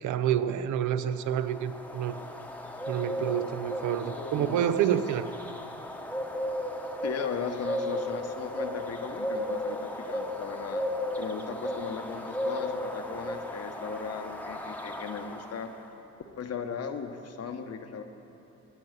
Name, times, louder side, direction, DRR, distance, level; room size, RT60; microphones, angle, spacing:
voice 1, 0.0-2.2 2.9-5.3, right 10 dB, 75° right, 12 dB, 0.6 m, -28 dB
sound 1, 1.2-15.8, left 1 dB, 5° left, 0.9 m, -35 dB
voice 2, 4.0-4.6 7.0-10.9 11.2-15.7 16.4-18.0, left 6 dB, 55° left, 7 dB, 1.0 m, -37 dB
14.0 x 5.4 x 9.3 m, 3.0 s
cardioid pair, 90°, 30 cm